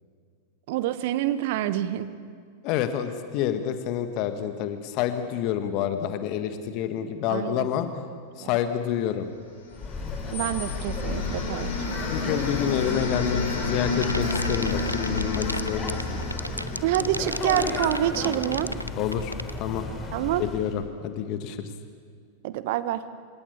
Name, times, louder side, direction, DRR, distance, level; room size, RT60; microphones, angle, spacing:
voice 1, 0.7-2.1 7.3-7.7 8.4-8.6 10.3-12.0 16.8-18.7 20.1-20.4 22.4-23.0, right 13 dB, 50° right, 14 dB, 1.3 m, -27 dB
voice 2, 2.6-8.0 8.4-9.3 12.1-16.3 18.9-19.9 20.4-21.7, left 10 dB, 40° left, 9 dB, 1.6 m, -28 dB
sound 1, 9.7-17.7, left 3 dB, 65° left, 6.2 m, -31 dB
sound 2, 9.7-20.8, left 3 dB, 20° left, 4.3 m, -34 dB
sound 3, 14.0-19.6, equal, 90° left, 0.6 m, -32 dB
27.0 x 18.0 x 8.6 m, 2.1 s
figure-of-eight pair, 90°, 0 cm